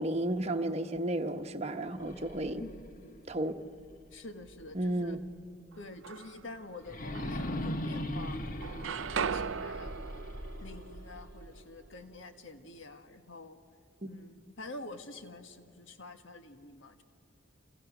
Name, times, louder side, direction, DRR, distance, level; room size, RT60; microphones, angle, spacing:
voice 1, 0.0-2.6 3.3-3.5 4.7-5.2 14.0-14.1, right 1 dB, 30° right, 1.1 m, -32 dB
sound 1, 1.9-4.9 5.3-5.4 6.8-11.9, left 1 dB, 45° left, 1.3 m, -40 dB
voice 2, 2.6-3.3 4.1-5.2 5.8-9.9 10.6-13.6 14.0-17.0, left 2 dB, 70° left, 1.6 m, -48 dB
sound 2, 5.7-6.6 7.1-8.2 8.4-12.4, right 6 dB, 70° right, 0.6 m, -39 dB
29.5 x 29.0 x 6.1 m
head